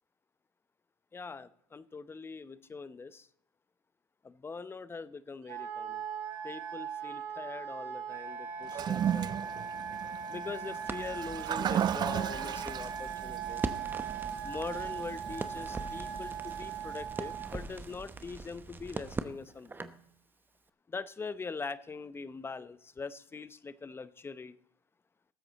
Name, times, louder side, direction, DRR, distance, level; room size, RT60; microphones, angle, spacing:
voice 1, 1.1-3.3 4.2-6.0 6.4-9.3 10.3-13.7 14.4-19.9 20.9-24.6, left 4 dB, 20° left, 15 dB, 0.7 m, -42 dB
Wind instrument woodwind instrument, 5.5-17.5, right 7 dB, 65° right, 2.6 m, -39 dB
Toilet flush, 8.6-17.9, right 9 dB, 35° right, 0.4 m, -37 dB
Crackle, 10.8-20.1, right 3 dB, 15° right, 0.9 m, -42 dB
19.0 x 7.9 x 4.0 m, 0.71 s
hypercardioid pair, 75°, 12 cm